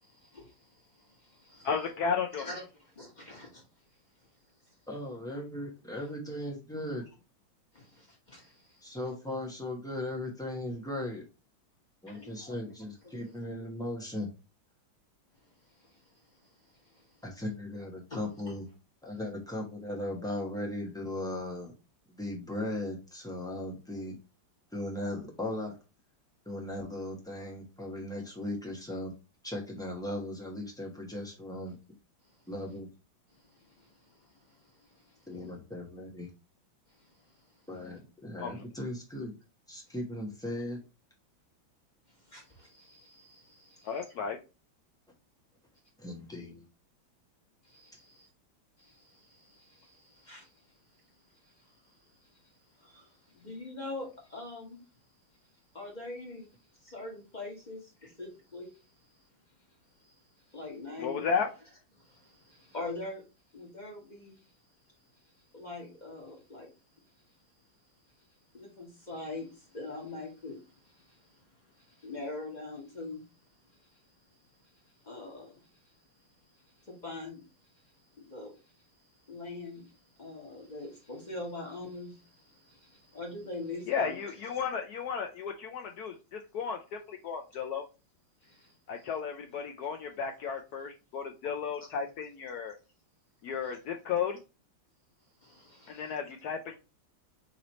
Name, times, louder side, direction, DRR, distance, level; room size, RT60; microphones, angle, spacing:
voice 1, 0.0-1.7 2.3-2.6 2.9-3.6 6.0-6.1 7.7-9.0 12.1-12.6 13.0-13.3 15.8-17.2 18.1-18.5 33.3-35.3 36.9-37.5 42.2-44.0 47.6-48.3 48.8-50.8 51.4-54.8 55.7-56.5 56.8-58.8 60.0-60.2 60.5-61.3 62.0-63.2 63.5-64.5 65.5-66.7 68.5-71.4 71.7-73.2 73.7-74.0 74.8-75.9 76.5-77.4 77.8-78.8 79.3-84.2 88.4-89.1 91.8-91.9 93.6-93.7 95.4-96.1, left 2 dB, 25° left, 1.4 m, -45 dB
voice 2, 1.6-2.5 38.4-38.6 43.8-44.4 61.0-61.5 83.9-87.8 88.9-92.7 93.4-94.4 95.9-96.7, left 6 dB, 75° left, 0.9 m, -34 dB
voice 3, 4.9-7.0 8.8-11.2 12.0-14.3 17.2-18.7 19.0-21.7 22.2-24.2 24.7-25.8 26.4-29.1 29.4-31.8 32.5-32.9 35.3-36.3 37.7-39.3 39.7-40.8 46.0-46.6, left 1 dB, 5° left, 0.5 m, -37 dB
3.9 x 3.1 x 4.0 m
omnidirectional pair, 2.2 m